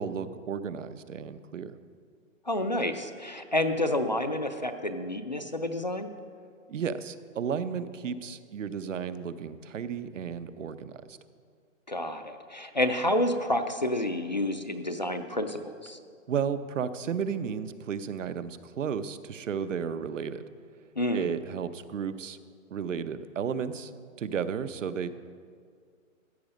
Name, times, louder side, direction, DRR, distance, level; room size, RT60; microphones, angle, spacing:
voice 1, 0.0-1.8 6.7-11.2 16.3-20.4 21.1-22.4 22.7-23.9 24.2-25.1, right 7 dB, 70° right, 12 dB, 0.8 m, -33 dB
voice 2, 2.5-6.1 11.9-16.0 21.0-21.3, left 1 dB, 35° left, 8 dB, 0.4 m, -29 dB
14.5 x 8.4 x 5.3 m, 2.1 s
hypercardioid pair, 170°, 40 cm